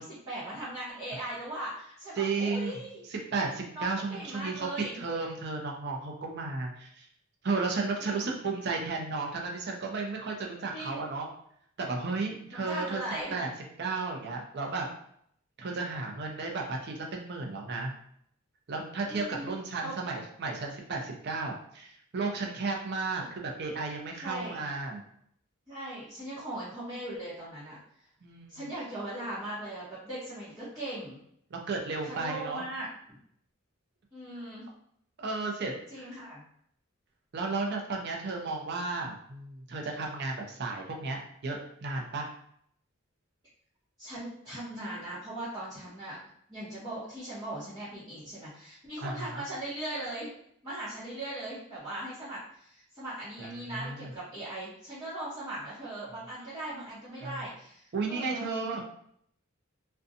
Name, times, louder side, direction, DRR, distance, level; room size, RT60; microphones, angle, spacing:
voice 1, 0.0-3.0 3.7-5.0 8.0-8.3 10.7-11.1 12.5-13.4 19.0-20.0 24.2-24.6 25.7-27.8 28.5-31.2 32.0-33.2 34.1-34.6 35.9-36.4 44.0-46.2 46.5-50.3 50.6-58.5, right 1 dB, 20° right, -14 dB, 0.9 m, -39 dB
voice 2, 2.2-2.8 3.1-4.7 4.9-7.1 7.4-11.3 11.8-13.0 13.3-13.5 13.8-14.9 15.6-17.9 18.7-25.0 28.2-28.7 31.5-32.6 35.2-36.1 37.3-42.3 49.0-49.5 53.4-54.1 57.2-57.4 57.9-58.8, right 3 dB, 55° right, 1 dB, 0.5 m, -34 dB
2.5 x 2.2 x 2.6 m, 0.68 s
head